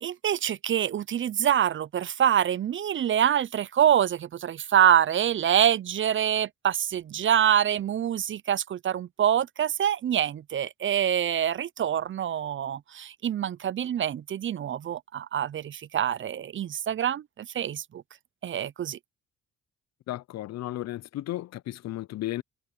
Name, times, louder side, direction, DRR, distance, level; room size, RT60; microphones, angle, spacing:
voice 1, 0.0-18.0 18.4-19.0, right 9 dB, 40° right, 0.5 m, -25 dB
voice 2, 20.1-22.4, left 15 dB, 60° left, 0.5 m, -34 dB
cardioid pair, 90°, 30 cm